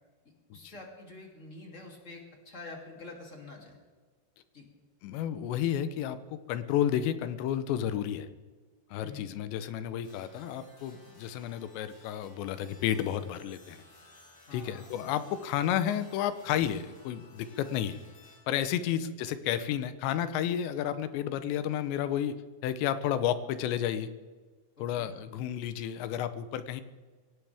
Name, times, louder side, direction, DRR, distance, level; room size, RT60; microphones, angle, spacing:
voice 1, 0.5-3.8 4.5-4.7 9.0-9.3 14.5-15.0 18.8-19.0 24.8-25.1, left 3 dB, 20° left, 0 dB, 2.3 m, -47 dB
voice 2, 5.0-8.3 8.9-13.8 14.5-18.0 18.5-22.3 22.6-24.1 24.8-26.8, left 10 dB, 90° left, 12 dB, 3.1 m, -31 dB
sound 1, 10.0-18.4, left 2 dB, 60° left, 8.5 m, -57 dB
22.5 x 17.5 x 3.5 m, 1.4 s
omnidirectional pair, 4.9 m